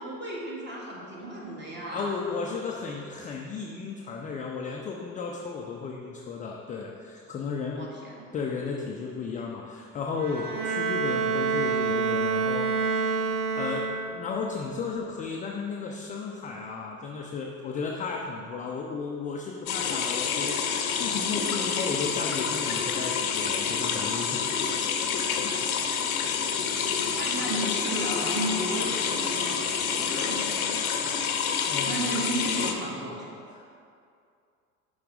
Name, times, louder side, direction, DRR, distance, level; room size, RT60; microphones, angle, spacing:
voice 1, 0.0-2.2 7.8-8.3 10.4-10.6 27.0-31.2 31.6-33.3, right 1 dB, 25° right, -4 dB, 1.8 m, -34 dB
voice 2, 1.9-8.0 8.3-24.8 25.1-25.6 26.0-26.4 27.1-27.3 31.7-32.1 33.5-33.7, left 5 dB, 20° left, -1 dB, 0.4 m, -34 dB
Bowed string instrument, 10.2-14.3, right 5 dB, 80° right, 0.8 m, -27 dB
sound 1, 19.7-32.7, left 6 dB, 70° left, 0.8 m, -28 dB
11.0 x 3.9 x 3.7 m, 2.4 s
figure-of-eight pair, 70°, 44 cm